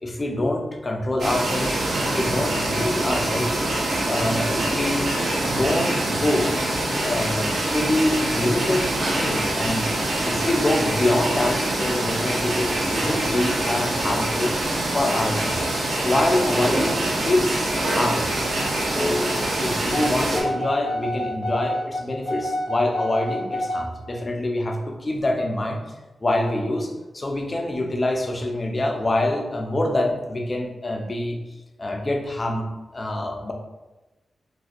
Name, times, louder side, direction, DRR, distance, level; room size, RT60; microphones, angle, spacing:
voice 1, 0.0-3.6 4.0-5.1 5.4-6.6 7.0-8.8 9.1-14.5 14.9-18.4 18.9-19.3 19.6-25.8 26.2-31.4 31.8-32.7 32.9-33.5, left 1 dB, 25° left, 2 dB, 0.4 m, -25 dB
sound 1, 1.2-20.4, right 1 dB, 70° right, 0.7 m, -25 dB
sound 2, 19.9-23.9, left 1 dB, 45° right, 1.0 m, -28 dB
2.5 x 2.1 x 3.8 m, 1.1 s
wide cardioid pair, 140°, 0 cm